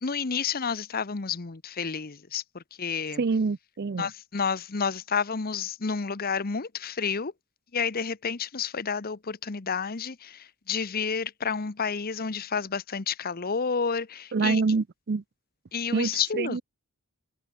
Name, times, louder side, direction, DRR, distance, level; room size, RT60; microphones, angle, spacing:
voice 1, 0.0-3.2 4.0-7.3 7.7-14.6 15.7-16.6, left 6 dB, 40° left, 0.9 m, -30 dB
voice 2, 3.2-4.1 14.3-15.2 15.9-16.6, right 4 dB, 45° right, 0.5 m, -26 dB
head